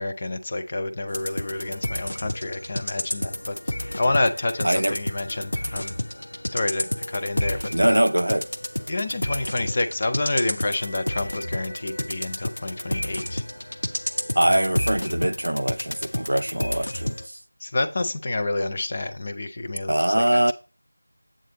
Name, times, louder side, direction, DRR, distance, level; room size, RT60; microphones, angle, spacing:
voice 1, 0.0-3.5 4.0-5.9 6.5-8.0 8.9-13.4 14.5-14.7 17.6-20.2, left 2 dB, 20° left, 0.3 m, -28 dB
sound 1, 1.1-17.3, left 1 dB, 65° left, 0.6 m, -31 dB
voice 2, 4.6-5.0 7.7-8.5 14.4-17.4 19.9-20.5, right 1 dB, 85° right, 0.3 m, -22 dB
7.5 x 3.9 x 3.3 m
figure-of-eight pair, 180°, 0 cm